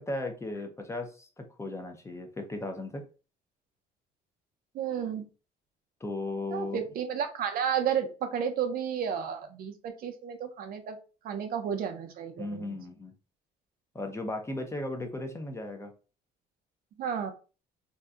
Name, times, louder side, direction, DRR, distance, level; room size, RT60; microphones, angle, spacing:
voice 1, 0.0-3.0 6.0-6.8 12.4-13.1 13.9-15.9, left 2 dB, 15° left, 4 dB, 0.6 m, -36 dB
voice 2, 4.7-5.2 6.5-11.0 11.2-12.8 17.0-17.3, right 8 dB, 60° right, 6 dB, 0.6 m, -32 dB
2.7 x 2.2 x 3.5 m, 0.35 s
cardioid pair, 110°, 17 cm